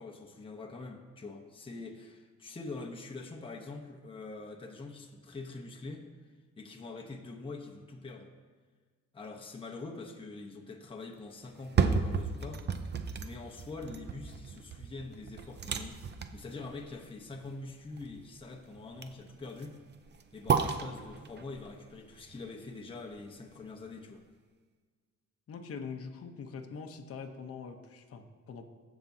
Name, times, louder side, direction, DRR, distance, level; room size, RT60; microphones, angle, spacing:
voice 1, 0.0-6.1 6.6-8.3 9.1-12.7 13.2-16.0 16.3-19.8 20.3-24.2, left 3 dB, 15° left, 1 dB, 0.9 m, -44 dB
sound 1, 11.5-23.5 23.9-24.0, right 6 dB, 35° right, 0.6 m, -34 dB
voice 2, 25.5-28.7, left 5 dB, 50° left, 5 dB, 0.9 m, -43 dB
15.5 x 6.0 x 2.7 m, 1.5 s
cardioid pair, 90°, 30 cm